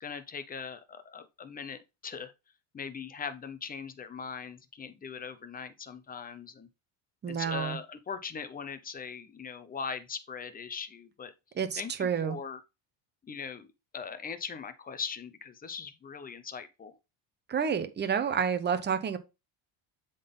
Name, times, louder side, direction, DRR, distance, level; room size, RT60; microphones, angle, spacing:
voice 1, 0.0-2.3 2.7-6.7 7.3-11.3 11.8-12.6 13.2-13.7 13.9-17.0, left 6 dB, 20° left, 0.7 m, -40 dB
voice 2, 7.2-7.8 11.6-12.4 17.5-19.2, right 7 dB, 20° right, 0.8 m, -29 dB
7.4 x 4.0 x 3.8 m
cardioid pair, 125°, 46 cm